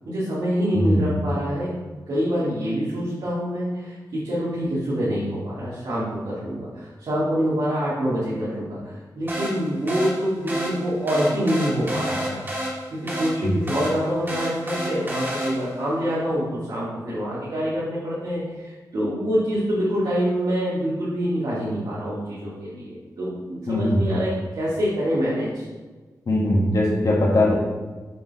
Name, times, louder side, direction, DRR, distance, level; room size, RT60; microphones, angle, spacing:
voice 1, 0.0-1.7 2.1-25.7, equal, 85° right, -11 dB, 2.0 m, -26 dB
voice 2, 0.7-1.1 13.3-13.5 23.7-24.1 26.2-27.5, left 1 dB, 55° left, -3 dB, 1.7 m, -20 dB
sound 1, 9.3-15.9, equal, 30° right, 1.6 m, -30 dB
6.7 x 4.3 x 4.1 m, 1.3 s
wide cardioid pair, 110°, 7 cm